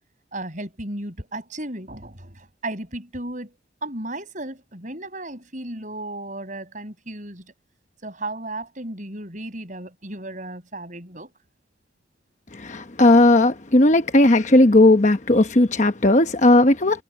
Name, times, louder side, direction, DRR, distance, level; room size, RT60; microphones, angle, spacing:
voice 1, 0.3-7.5 8.0-11.3, right 1 dB, 40° right, 6.9 m, -34 dB
voice 2, 12.5-17.0, left 2 dB, 40° left, 1.0 m, -16 dB
head